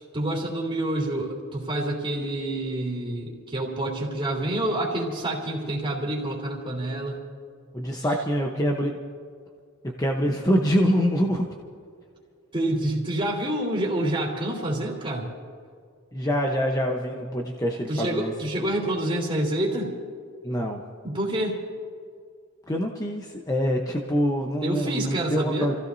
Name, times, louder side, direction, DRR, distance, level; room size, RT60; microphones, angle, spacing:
voice 1, 0.0-7.2 12.5-15.3 17.9-19.9 21.0-21.6 24.6-25.7, right 1 dB, 25° right, -4 dB, 3.0 m, -27 dB
voice 2, 7.7-8.9 9.8-11.5 16.1-18.3 20.4-20.8 22.7-25.8, equal, 15° left, 1 dB, 1.0 m, -25 dB
29.0 x 16.0 x 2.7 m, 2.2 s
head